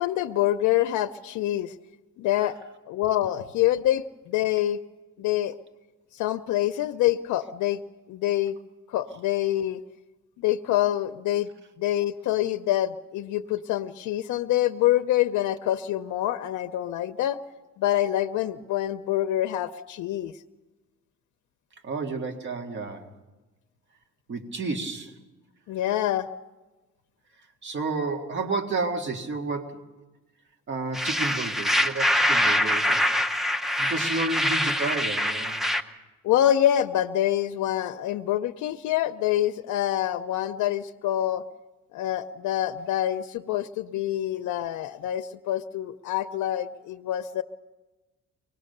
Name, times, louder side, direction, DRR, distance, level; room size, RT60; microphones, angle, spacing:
voice 1, 0.0-1.7 2.2-2.6 2.9-4.8 5.2-5.5 6.1-7.8 8.1-8.6 8.9-9.8 10.4-11.5 11.8-17.4 17.8-20.3 25.7-26.3 36.2-41.4 41.9-47.4, left 13 dB, 90° left, 8 dB, 0.6 m, -26 dB
voice 2, 21.8-23.1 24.3-25.1 27.6-29.8 30.7-33.0 33.8-35.6, right 3 dB, 40° right, 3 dB, 1.8 m, -31 dB
sound 1, 30.9-35.8, equal, ahead, 0.6 m, -24 dB
24.0 x 19.5 x 6.6 m, 1.2 s
cardioid pair, 170°, 29 cm